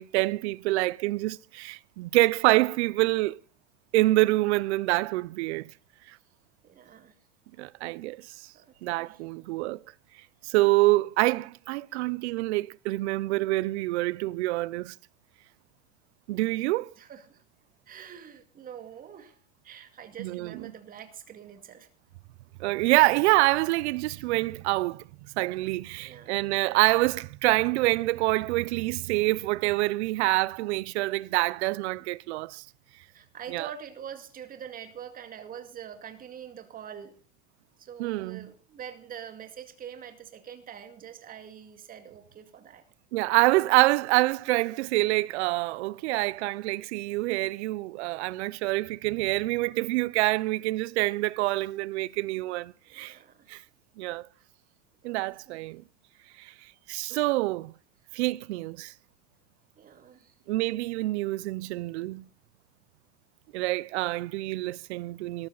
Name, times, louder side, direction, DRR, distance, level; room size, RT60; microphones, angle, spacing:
voice 1, 0.0-3.4 3.9-5.7 7.6-8.5 8.8-9.8 10.4-14.9 16.3-16.9 20.2-20.6 22.6-25.0 25.4-32.6 33.5-33.7 38.0-38.5 43.1-53.2 53.5-53.6 54.0-54.3 55.0-55.8 56.4-56.5 56.9-57.7 58.1-58.9 60.5-62.2 63.5-65.5, right 20 dB, 60° right, 0.7 m, -26 dB
voice 2, 6.6-7.1 8.5-9.2 11.9-12.1 17.0-17.4 17.9-21.9 26.0-26.5 32.0-32.1 33.1-37.2 37.8-42.8 52.9-53.5 55.0-55.6 59.8-60.4, right 9 dB, 20° right, 2.3 m, -45 dB
18.0 x 14.0 x 4.0 m
supercardioid pair, 160°, 39 cm